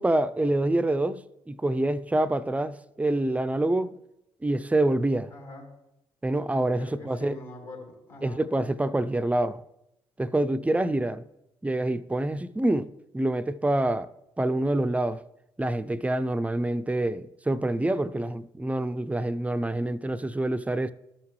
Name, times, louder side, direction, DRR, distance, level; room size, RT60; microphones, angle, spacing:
voice 1, 0.0-3.9 4.4-5.3 6.2-7.3 8.2-9.6 10.2-11.2 11.6-14.1 14.4-15.2 15.6-20.9, right 1 dB, 10° right, 0.4 m, -26 dB
voice 2, 5.3-5.7 6.8-8.4, left 2 dB, 65° left, 2.9 m, -43 dB
13.0 x 5.8 x 3.1 m
hypercardioid pair, 45°, 14 cm